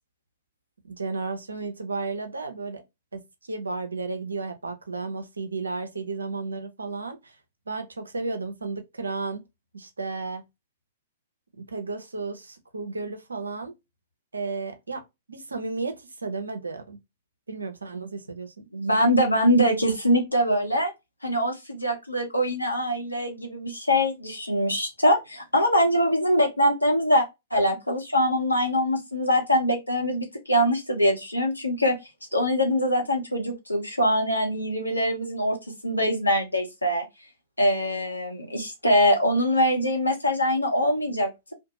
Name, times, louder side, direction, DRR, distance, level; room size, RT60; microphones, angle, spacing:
voice 1, 0.8-2.8 3.1-7.4 7.7-9.5 9.7-10.4 11.6-13.7 14.3-17.0 17.5-18.6, right 3 dB, 80° right, 0.6 m, -33 dB
voice 2, 18.7-20.9 21.2-27.2 27.5-32.0 32.3-35.6 35.8-37.0 37.6-41.5, equal, 90° left, 0.9 m, -23 dB
2.6 x 2.2 x 2.8 m
figure-of-eight pair, 105°, 0 cm